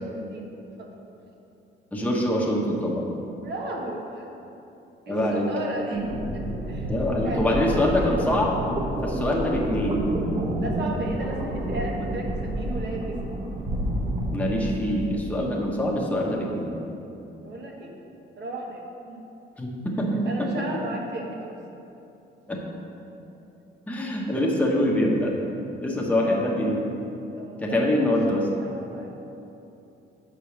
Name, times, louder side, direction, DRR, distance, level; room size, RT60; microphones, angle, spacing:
voice 1, 0.1-0.9 3.4-4.3 5.1-6.1 6.3-6.9 7.2-7.8 10.6-13.4 17.4-17.9 18.4-18.8 19.1-19.2 20.2-21.6 27.4-28.1 28.6-29.1, right 2 dB, 60° right, 0 dB, 1.3 m, -35 dB
voice 2, 1.9-3.0 5.1-5.5 6.9-8.5 9.0-10.1 14.3-16.8 19.6-20.5 22.5-22.6 23.9-25.4 25.8-26.8 27.6-28.5, left 1 dB, 5° left, -3 dB, 1.1 m, -24 dB
sound 1, 5.9-15.3, right 1 dB, 30° right, 1.2 m, -29 dB
6.0 x 5.1 x 6.0 m, 2.9 s
cardioid pair, 90°, 20 cm